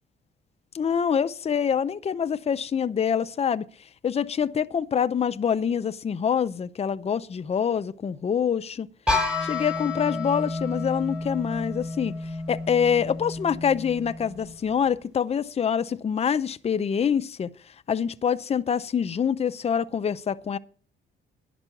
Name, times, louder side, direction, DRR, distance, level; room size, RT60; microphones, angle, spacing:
voice 1, 0.7-3.7 4.0-8.9 9.4-12.1 12.5-17.5 17.9-20.6, left 7 dB, 30° left, 0.5 m, -25 dB
sound 1, 9.1-14.9, left 2 dB, 5° right, 4.2 m, -31 dB
10.5 x 6.1 x 7.0 m
cardioid pair, 90°, 20 cm